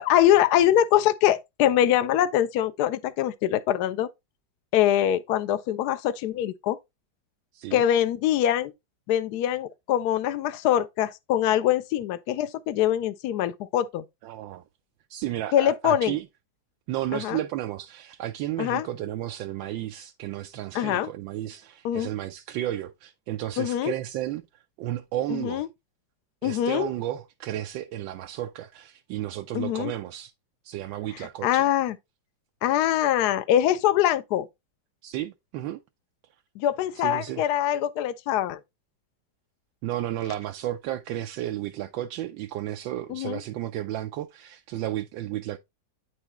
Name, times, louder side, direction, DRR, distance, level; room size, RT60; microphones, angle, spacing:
voice 1, 0.0-4.1 4.7-6.8 7.7-8.7 9.1-14.0 15.5-16.2 17.1-17.4 18.6-18.9 20.7-21.1 21.8-22.1 23.6-23.9 25.3-25.7 26.4-26.9 29.5-29.9 31.4-32.0 32.6-34.5 36.6-38.6 43.1-43.4, left 11 dB, 70° left, 1.0 m, -23 dB
voice 2, 14.2-14.6 15.1-16.3 16.9-24.4 24.8-25.7 26.4-30.3 30.6-31.6 35.0-35.8 36.9-37.5 39.8-45.6, right 13 dB, 90° right, 1.3 m, -33 dB
8.9 x 4.9 x 2.9 m
omnidirectional pair, 2.0 m